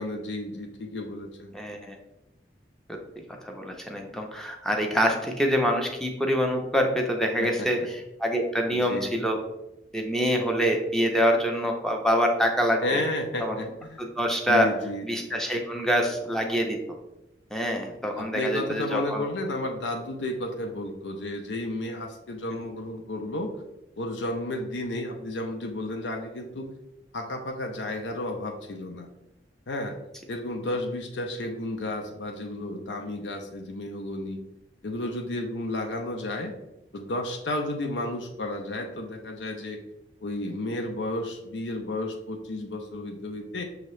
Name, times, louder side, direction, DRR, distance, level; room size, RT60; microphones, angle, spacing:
voice 1, 0.0-1.5 7.4-7.9 8.7-9.1 12.8-14.1 14.5-15.3 18.2-23.5 24.0-26.7 27.1-29.1 29.7-30.0 30.3-34.4 34.8-36.5 36.9-39.8 40.2-43.6, left 1 dB, 90° left, 3 dB, 0.5 m, -32 dB
voice 2, 1.5-2.0 2.9-3.0 3.4-7.8 8.2-9.4 9.9-13.0 13.4-13.6 14.0-14.7 15.0-16.8 17.5-19.3, equal, 5° left, 2 dB, 0.5 m, -25 dB
6.1 x 2.8 x 3.1 m, 0.93 s
head